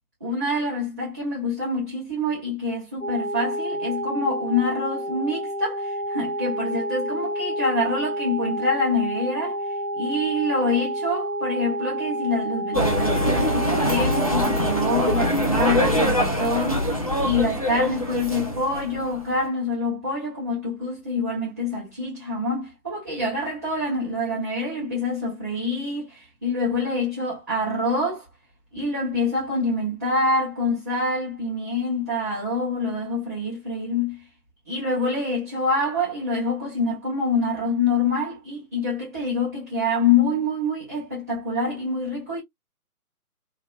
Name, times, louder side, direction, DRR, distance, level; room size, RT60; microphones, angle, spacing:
voice 1, 0.2-28.2 28.7-34.2 34.7-42.4, left 2 dB, 10° right, 0.7 m, -26 dB
sound 1, 3.0-15.3, equal, 65° left, 0.9 m, -29 dB
sound 2, 12.7-19.4, equal, 25° left, 0.5 m, -23 dB
3.6 x 2.7 x 2.3 m
figure-of-eight pair, 145°, 45 cm